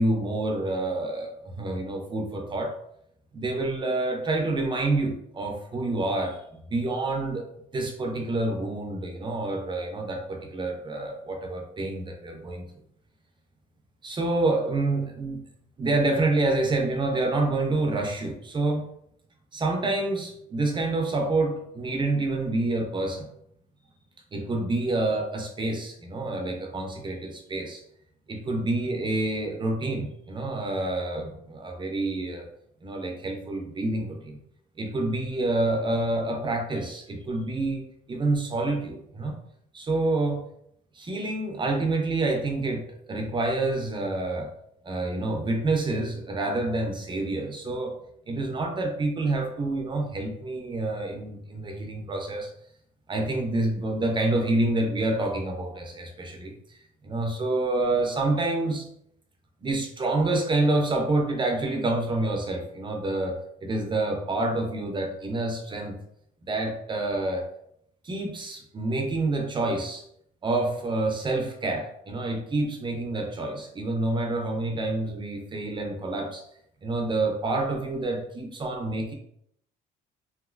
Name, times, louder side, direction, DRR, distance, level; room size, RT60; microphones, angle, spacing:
voice 1, 0.0-2.7 3.3-7.4 7.7-12.7 14.0-15.4 15.8-18.9 19.5-23.3 24.3-27.8 28.3-32.5 32.8-34.4 34.8-39.3 39.7-40.4 40.9-42.8 43.1-44.5 44.8-48.0 48.3-52.5 53.1-56.5 57.0-58.9 59.6-65.9 66.5-67.4 68.0-70.0 70.4-76.4 76.8-79.1, right 2 dB, 30° right, 2 dB, 0.5 m, -28 dB
2.9 x 2.9 x 2.4 m, 0.71 s
cardioid pair, 110°, 17 cm